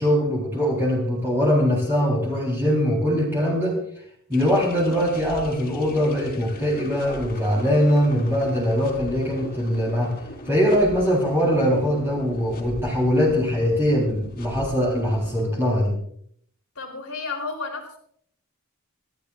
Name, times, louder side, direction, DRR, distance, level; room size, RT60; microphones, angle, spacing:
voice 1, 0.0-3.8 4.3-10.1 10.5-15.9, equal, 10° right, -4 dB, 3.6 m, -22 dB
sound 1, 4.3-15.4, left 1 dB, 45° left, 3.3 m, -40 dB
voice 2, 16.8-18.0, left 4 dB, 75° left, 2 dB, 3.5 m, -32 dB
26.5 x 12.5 x 2.4 m, 0.65 s
head